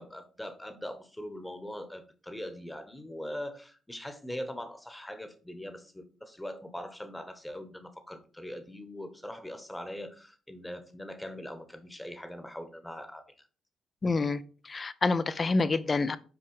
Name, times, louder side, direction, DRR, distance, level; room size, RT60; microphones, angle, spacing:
voice 1, 0.0-13.5, left 1 dB, 10° left, 1.1 m, -41 dB
voice 2, 14.0-16.2, left 3 dB, 30° left, 0.5 m, -28 dB
6.0 x 4.6 x 4.7 m
cardioid pair, 90°, 0 cm